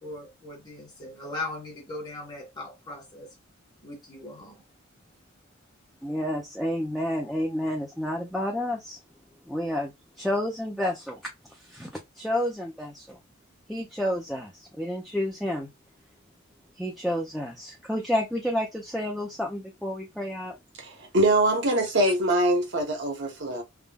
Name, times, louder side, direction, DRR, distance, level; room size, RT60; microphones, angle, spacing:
voice 1, 0.0-3.3 3.8-4.6, left 2 dB, 20° left, 1.0 m, -39 dB
voice 2, 6.0-9.0 9.5-11.2 11.5-11.9 12.2-13.2 13.7-15.7 16.8-20.6 22.0-22.1, left 1 dB, ahead, 0.4 m, -30 dB
voice 3, 20.8-23.6, right 1 dB, 55° right, 0.8 m, -23 dB
3.4 x 2.1 x 2.2 m
head